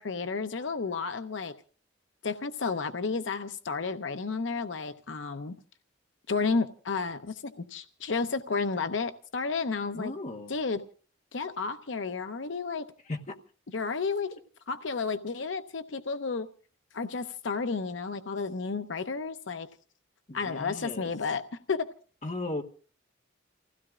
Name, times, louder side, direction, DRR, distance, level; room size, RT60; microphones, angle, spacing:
voice 1, 0.0-1.5 2.2-5.6 6.3-10.1 10.5-10.8 11.3-12.9 13.7-14.3 14.7-16.5 16.9-19.7 20.3-21.4 21.7-21.9, left 4 dB, 80° left, 0.7 m, -32 dB
voice 2, 9.9-10.5 13.1-13.4 20.3-21.1 22.2-22.6, left 2 dB, 40° left, 1.2 m, -36 dB
29.5 x 16.0 x 2.4 m
head